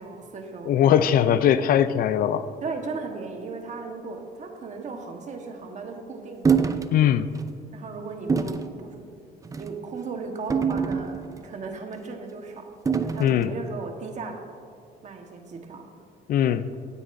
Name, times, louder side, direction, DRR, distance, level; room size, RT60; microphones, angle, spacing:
voice 1, 0.0-1.1 2.6-6.6 7.7-9.0 9.5-12.8 13.0-14.4 15.0-15.9, right 4 dB, 45° right, 4 dB, 1.3 m, -36 dB
voice 2, 0.7-2.5 6.9-7.3 13.2-13.5 16.3-16.7, left 9 dB, 60° left, 13 dB, 0.4 m, -20 dB
sound 1, 6.4-6.9 7.4-7.5 8.3-8.7 9.4-9.7 10.5-11.4 12.9-13.4, right 6 dB, 20° right, 0.5 m, -24 dB
16.0 x 9.6 x 2.6 m, 2.3 s
cardioid pair, 110°, 17 cm